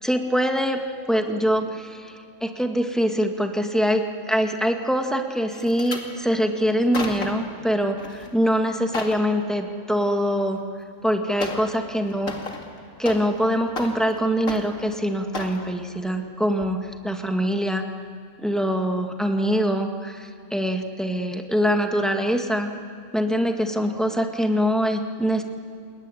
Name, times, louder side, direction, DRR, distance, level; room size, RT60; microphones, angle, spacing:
voice 1, 0.0-0.8 1.1-2.1 2.4-10.6 11.0-12.3 13.0-17.8 18.4-22.7 23.1-25.4, equal, ahead, 3 dB, 1.9 m, -24 dB
sound 1, 5.5-6.1 6.7-7.5 8.0-8.3 8.6-9.2 10.6-10.7 11.4-11.7 12.0-13.4 13.7-14.2 14.5-14.9 15.3-15.6 16.1-16.3 16.6-16.7, left 3 dB, 75° left, 2.9 m, -33 dB
28.5 x 20.5 x 10.0 m, 2.5 s
omnidirectional pair, 1.4 m